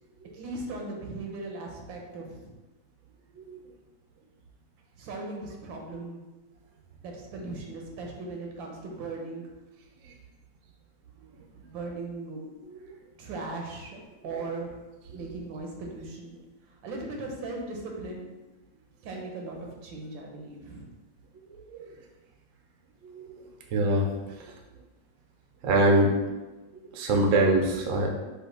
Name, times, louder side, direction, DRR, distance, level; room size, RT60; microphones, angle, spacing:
voice 1, 0.3-2.5 4.9-6.2 7.0-9.4 11.5-12.5 13.2-14.0 14.2-14.8 15.1-16.4 16.7-18.3 19.0-20.9, right 3 dB, 85° right, 0 dB, 1.6 m, -38 dB
voice 2, 23.0-23.4 23.7-24.1 25.6-26.1 26.9-28.1, right 1 dB, 65° right, 1 dB, 0.8 m, -23 dB
5.0 x 2.5 x 3.9 m, 1.1 s
omnidirectional pair, 2.0 m